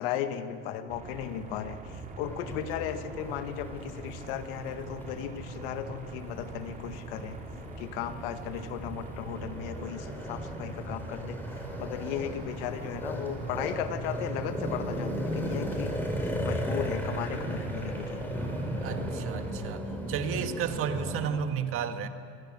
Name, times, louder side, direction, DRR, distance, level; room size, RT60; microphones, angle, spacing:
voice 1, 0.0-7.4 7.8-11.4 11.8-15.9 16.2-18.3, left 10 dB, 80° left, 9 dB, 1.7 m, -36 dB
sound 1, 0.9-19.5, right 4 dB, 30° right, 3.2 m, -43 dB
sound 2, 2.2-21.3, equal, 5° left, 4.9 m, -36 dB
voice 2, 18.8-22.1, right 7 dB, 50° right, 8 dB, 1.7 m, -32 dB
26.0 x 19.5 x 7.6 m, 2.5 s
supercardioid pair, 130°, 29 cm